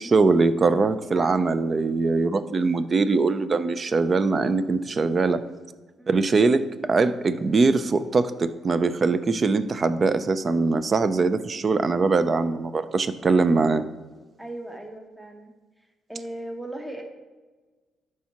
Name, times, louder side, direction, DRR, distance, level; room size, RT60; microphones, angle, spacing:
voice 1, 0.0-5.4 6.1-13.8, right 3 dB, 40° right, 12 dB, 0.5 m, -22 dB
voice 2, 1.1-1.5 2.2-2.3 6.0-6.2 14.4-15.5 16.1-17.0, right 1 dB, 10° right, 2 dB, 1.1 m, -38 dB
11.5 x 4.7 x 2.9 m, 1.3 s
cardioid pair, 90°, 0 cm